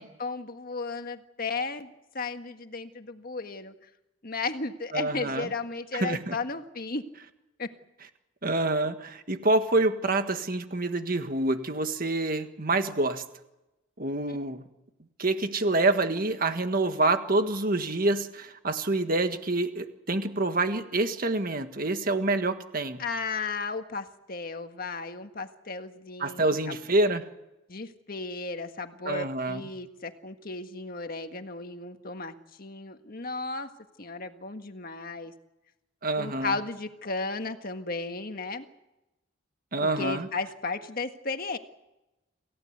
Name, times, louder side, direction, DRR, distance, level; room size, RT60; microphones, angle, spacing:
voice 1, 0.0-3.7 4.2-7.0 7.6-7.7 14.3-14.4 23.0-26.8 27.7-33.7 34.0-35.3 36.2-38.7 39.8-41.6, left 3 dB, 50° left, 7 dB, 1.6 m, -34 dB
voice 2, 4.9-5.5 6.0-6.4 8.4-13.2 14.0-14.6 15.2-23.0 26.2-27.2 29.1-29.6 36.0-36.5 39.7-40.3, right 2 dB, 45° right, 8 dB, 1.6 m, -27 dB
28.0 x 16.5 x 8.1 m, 0.96 s
head